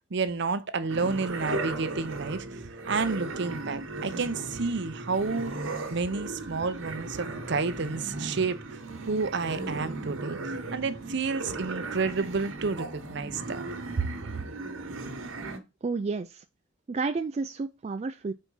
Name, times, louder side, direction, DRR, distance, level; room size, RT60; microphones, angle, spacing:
voice 1, 0.1-2.6 2.9-5.5 5.9-8.8 9.1-13.6 14.0-14.1, right 4 dB, 60° right, 0.7 m, -30 dB
sound 1, 0.9-15.6, right 2 dB, 90° right, 1.3 m, -36 dB
voice 2, 15.8-16.4 16.9-18.3, right 4 dB, 30° right, 0.3 m, -31 dB
4.6 x 4.3 x 5.4 m
head